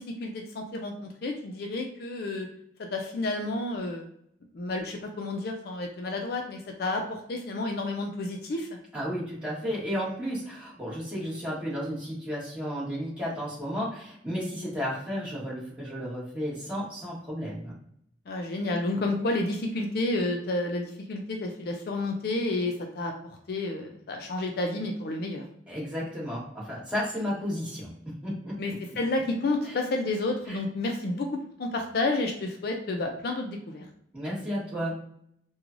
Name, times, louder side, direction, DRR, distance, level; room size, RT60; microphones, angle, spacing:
voice 1, 0.0-2.5 2.9-4.1 4.5-8.7 18.3-23.1 23.5-25.4 28.6-31.3 31.6-33.8, left 2 dB, 55° left, 3 dB, 0.4 m, -30 dB
voice 2, 8.9-17.7 25.7-28.8 29.7-29.8 30.5-30.6 34.1-35.0, equal, 5° right, -8 dB, 1.2 m, -33 dB
3.0 x 2.2 x 2.5 m, 0.70 s
head